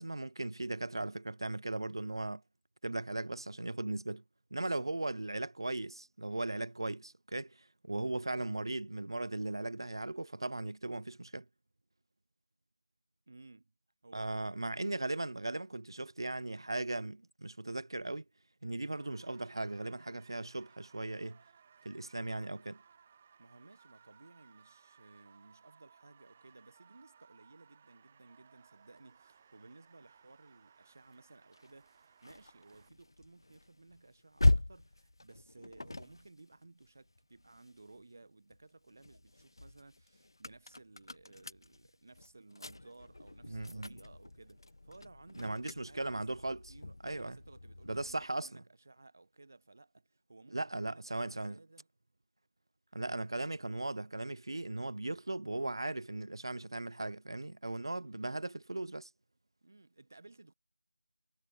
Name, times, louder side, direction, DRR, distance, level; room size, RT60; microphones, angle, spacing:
voice 1, 0.0-2.4 2.8-4.2 4.5-11.5 14.1-18.2 18.6-21.4 21.8-22.8 43.5-43.9 45.4-46.7 47.0-47.4 47.9-48.6 50.5-51.6 52.9-59.1, right 2 dB, 65° right, 0.4 m, -38 dB
voice 2, 13.3-13.7 14.0-14.7 23.4-46.4 46.7-51.9 58.0-58.1 59.6-60.5, right 2 dB, 35° right, 4.2 m, -58 dB
sound 1, 19.0-32.9, right 7 dB, 10° right, 0.9 m, -64 dB
sound 2, 31.5-38.1 38.5-48.3, left 2 dB, 65° left, 0.7 m, -39 dB
figure-of-eight pair, 180°, 2 cm